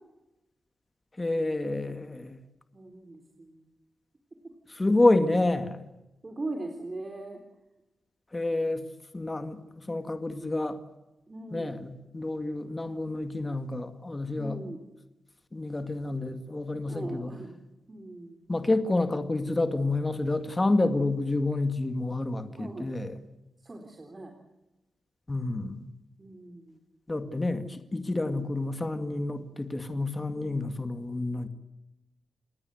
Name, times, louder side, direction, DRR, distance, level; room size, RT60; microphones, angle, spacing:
voice 1, 1.2-2.4 4.7-5.8 8.3-8.8 9.1-10.8 11.5-14.6 15.5-17.3 18.5-23.2 25.3-25.8 27.1-31.5, left 2 dB, 20° left, 8 dB, 2.1 m, -29 dB
voice 2, 2.7-3.6 6.2-7.4 11.3-11.7 14.4-14.8 16.9-17.6 17.9-18.4 22.6-22.9 23.6-24.3 26.2-26.8 30.3-30.6, right 2 dB, 30° right, 4 dB, 3.8 m, -40 dB
29.5 x 19.5 x 8.0 m, 0.98 s
cardioid pair, 95°, 0 cm